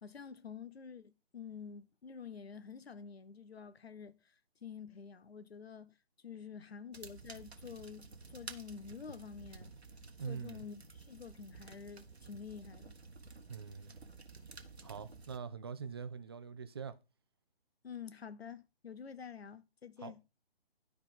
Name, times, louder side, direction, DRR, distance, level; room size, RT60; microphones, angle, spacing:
voice 1, 0.0-4.3 4.6-5.9 6.2-9.7 10.2-13.0 17.8-20.2, left 6 dB, 75° left, 0.8 m, -48 dB
sound 1, 6.9-15.4, right 4 dB, 90° right, 1.1 m, -53 dB
voice 2, 10.2-10.6 13.5-13.9 14.8-16.9 20.0-20.1, right 6 dB, 25° right, 0.4 m, -43 dB
11.0 x 4.6 x 3.6 m
figure-of-eight pair, 140°, 31 cm